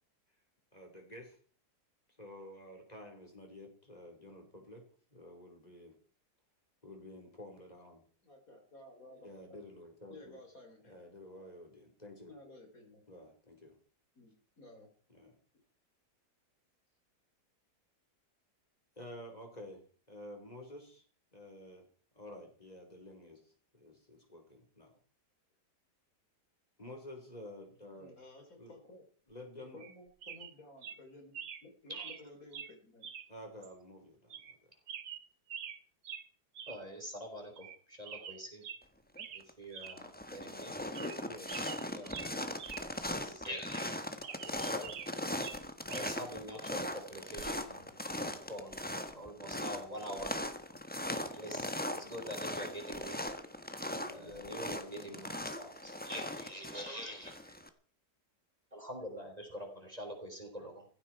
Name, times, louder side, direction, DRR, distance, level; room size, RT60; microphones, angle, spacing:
voice 1, 0.7-1.4 2.2-4.8 5.1-5.9 6.8-8.0 9.2-10.4 10.8-12.3 13.1-13.8 15.1-15.3 19.0-21.0 21.3-21.9 22.1-24.9 26.8-28.2 28.6-28.7 29.3-29.8 33.3-34.6 41.0-42.0 53.8-55.3, left 1 dB, 25° left, 2 dB, 4.6 m, -50 dB
voice 2, 8.2-9.7 10.1-11.0 12.3-13.0 14.2-14.9 27.9-29.0 29.7-31.3 31.6-33.1, left 2 dB, 55° left, 4 dB, 4.0 m, -55 dB
sound 1, 29.8-30.0 30.2-30.5 30.8-31.0 31.3-31.6 31.9-32.2 32.5-32.7 33.0-33.3 33.6-33.7 34.3-34.6 34.9-35.8 36.0-36.3 36.6-36.8 37.1-37.2 37.6-37.8 38.0-38.8 39.2-39.4 39.7-40.0 40.4-40.5 40.8-41.2 41.5-42.8 43.1-43.2 43.8-45.1 45.4-46.2 47.4-47.6, right 8 dB, 75° right, 1.7 m, -46 dB
voice 3, 36.7-38.6 39.3-40.7 41.9-42.6 43.0-44.9 45.9-50.4 51.0-53.2 54.1-57.6 58.7-60.8, equal, 20° right, 3 dB, 3.8 m, -45 dB
sound 2, 39.1-39.5 39.8-57.7, left 1 dB, 5° left, 1.1 m, -39 dB
16.5 x 15.5 x 4.7 m, 0.42 s
omnidirectional pair, 1.8 m